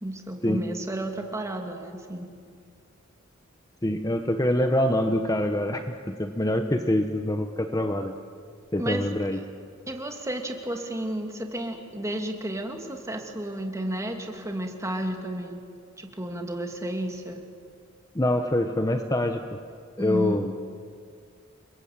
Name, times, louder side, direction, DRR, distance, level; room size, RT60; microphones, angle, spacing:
voice 1, 0.0-2.3 8.8-9.1 9.3-9.4 9.9-15.6 16.0-17.4 20.0-20.4, right 1 dB, 15° right, 3 dB, 2.6 m, -32 dB
voice 2, 3.8-8.1 8.7-9.4 18.1-19.6 20.0-20.5, left 1 dB, 15° left, 6 dB, 1.0 m, -25 dB
29.5 x 21.5 x 8.8 m, 2.2 s
head